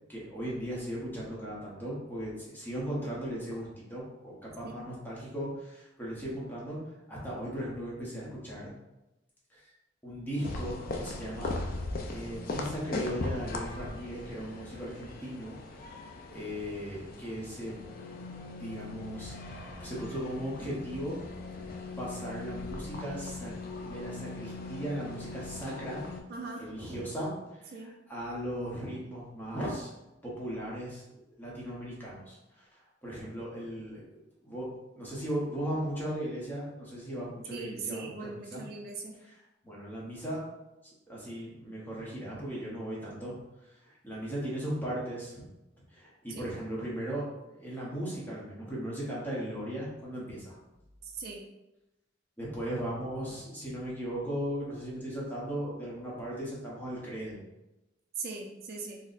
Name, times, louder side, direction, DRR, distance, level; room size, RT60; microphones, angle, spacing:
voice 1, 0.1-8.7 9.5-9.7 10.0-11.5 12.1-15.9 16.3-17.8 18.6-21.2 22.0-23.5 23.8-26.0 26.6-29.9 30.2-34.0 34.4-34.7 34.9-38.6 39.2-40.4 41.1-45.4 45.9-47.2 47.5-50.6 52.4-57.4, equal, 10° left, -6 dB, 0.8 m, -37 dB
sound 1, 10.4-26.2, left 2 dB, 50° left, 0.4 m, -39 dB
voice 2, 26.3-26.6 27.7-27.9 37.5-39.2 46.3-46.5 51.0-51.4 58.2-59.0, right 4 dB, 55° right, 1 dB, 0.4 m, -40 dB
4.0 x 2.0 x 2.4 m, 0.97 s
head